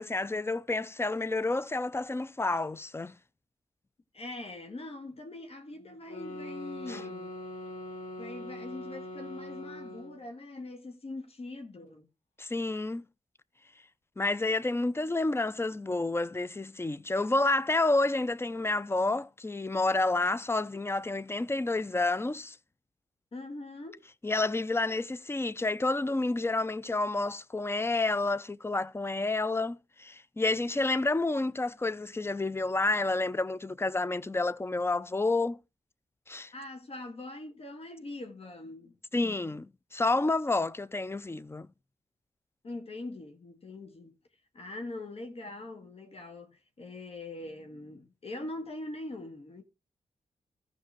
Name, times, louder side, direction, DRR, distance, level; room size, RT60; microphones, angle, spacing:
voice 1, 0.0-3.2 6.9-7.0 12.4-13.0 14.2-22.6 24.2-35.6 36.3-36.5 39.1-39.6 39.9-41.7, left 2 dB, 20° left, 0.5 m, -29 dB
voice 2, 4.1-7.3 8.2-12.1 23.3-24.0 36.5-39.4 42.6-44.2 44.5-49.6, left 2 dB, 55° left, 1.9 m, -42 dB
sound 1, 6.1-10.3, left 1 dB, 85° left, 2.3 m, -42 dB
14.5 x 5.3 x 4.6 m
cardioid pair, 50°, 12 cm